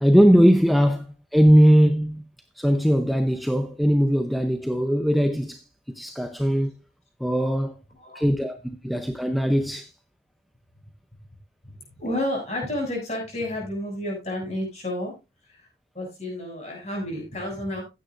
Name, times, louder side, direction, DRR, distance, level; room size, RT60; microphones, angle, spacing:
voice 1, 0.0-2.3 2.6-5.6 5.9-6.7 7.2-7.8 8.1-9.9, equal, ahead, 0.7 m, -20 dB
voice 2, 7.9-8.2 11.7-15.1 15.4-15.7 15.9-17.8, left 1 dB, 40° left, 7.1 m, -31 dB
15.5 x 9.5 x 2.6 m
head